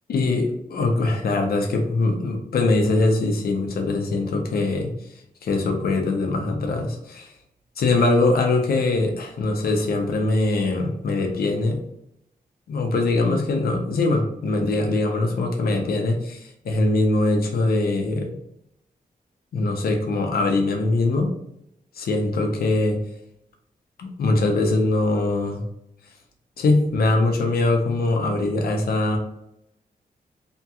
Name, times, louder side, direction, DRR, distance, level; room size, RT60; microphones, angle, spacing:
voice 1, 0.1-4.9 5.4-7.3 7.8-11.8 12.7-18.3 19.5-21.3 22.0-23.0 24.0-25.6 26.6-29.2, left 2 dB, 85° left, 3 dB, 0.6 m, -22 dB
2.9 x 2.3 x 2.8 m, 0.78 s
wide cardioid pair, 140°, 15 cm